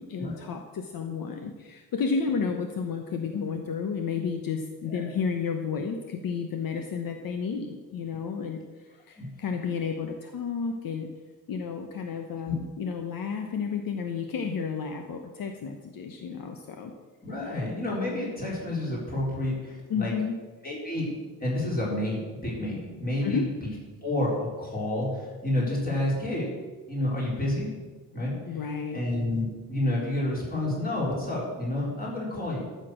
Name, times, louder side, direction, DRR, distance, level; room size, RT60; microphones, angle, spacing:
voice 1, 0.0-11.1 11.5-16.9 19.9-20.4 23.2-23.4 28.5-29.0, left 5 dB, 65° left, 5 dB, 1.0 m, -32 dB
voice 2, 17.2-20.1 20.6-23.7 24.0-26.5 26.9-27.7 28.1-28.4 28.9-32.7, left 1 dB, 25° left, -4 dB, 4.3 m, -29 dB
13.5 x 6.8 x 6.3 m, 1.3 s
wide cardioid pair, 150°, 37 cm